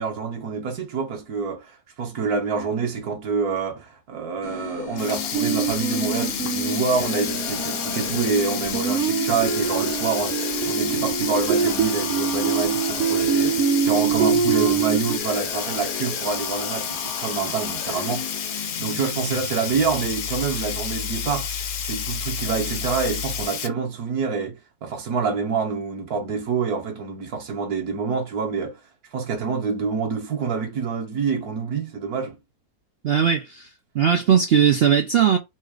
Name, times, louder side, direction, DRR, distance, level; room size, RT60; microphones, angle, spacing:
voice 1, 0.0-28.8 29.1-32.4, right 5 dB, 70° right, 1.5 m, -27 dB
sound 1, 4.4-23.4, left 7 dB, 85° left, 1.7 m, -35 dB
Sink (filling or washing), 4.8-23.7, left 8 dB, 60° left, 1.0 m, -31 dB
sound 2, 5.3-15.2, right 7 dB, 50° right, 0.9 m, -24 dB
voice 2, 33.0-33.7 33.9-35.4, right 8 dB, 90° right, 0.5 m, -18 dB
4.2 x 2.4 x 4.8 m
omnidirectional pair, 1.7 m